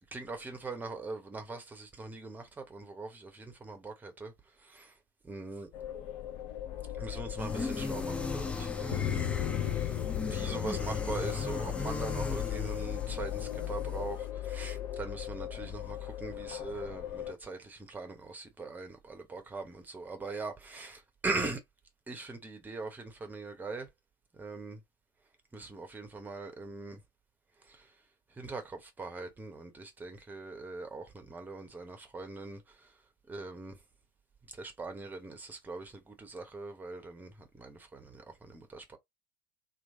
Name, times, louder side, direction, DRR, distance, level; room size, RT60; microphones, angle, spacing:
voice 1, 0.1-4.3 4.7-4.9 5.2-5.7 7.0-9.2 9.7-9.9 10.3-21.6 22.1-23.9 24.4-24.8 25.5-27.0 28.4-32.6 33.3-33.7 34.6-39.0, right 3 dB, 15° right, 0.9 m, -41 dB
sound 1, 5.7-17.3, left 12 dB, 50° left, 0.7 m, -37 dB
sound 2, 7.4-14.3, left 3 dB, 10° left, 0.6 m, -38 dB
3.0 x 2.6 x 2.6 m
figure-of-eight pair, 70°, 12 cm